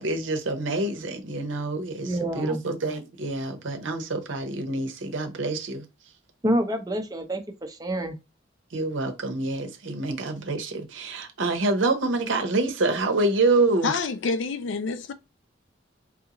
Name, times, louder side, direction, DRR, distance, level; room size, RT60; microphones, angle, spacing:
voice 1, 0.0-5.8 8.7-13.9, right 2 dB, 80° right, 0.8 m, -26 dB
voice 2, 2.0-2.6 6.4-8.2, right 1 dB, 20° right, 0.5 m, -27 dB
voice 3, 13.8-15.1, left 4 dB, 70° left, 0.4 m, -27 dB
3.6 x 2.5 x 2.9 m
head